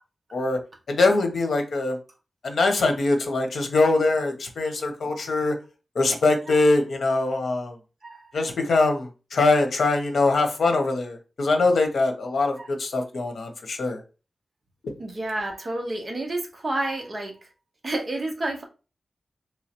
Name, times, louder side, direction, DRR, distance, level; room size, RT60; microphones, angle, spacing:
voice 1, 0.9-2.0 2.4-5.5 5.9-7.8 8.3-14.0, left 3 dB, 80° left, 0.8 m, -23 dB
voice 2, 8.0-8.4 12.6-12.7 15.0-17.5 17.8-18.6, right 2 dB, 35° right, 0.8 m, -30 dB
3.5 x 3.1 x 2.9 m
wide cardioid pair, 175°, 0 cm